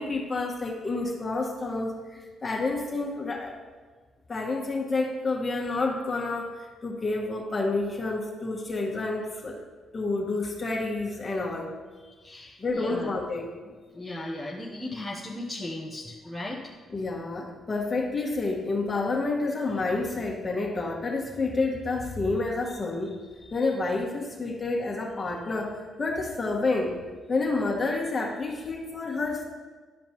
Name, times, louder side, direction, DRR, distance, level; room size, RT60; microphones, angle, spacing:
voice 1, 0.0-3.6 4.3-9.6 9.9-11.7 12.6-13.4 16.9-27.0 27.3-29.4, left 3 dB, 25° left, -2 dB, 1.7 m, -29 dB
voice 2, 12.2-13.1 13.9-16.7, left 1 dB, ahead, -5 dB, 1.0 m, -36 dB
12.0 x 5.0 x 3.1 m, 1.4 s
cardioid pair, 90°, 0 cm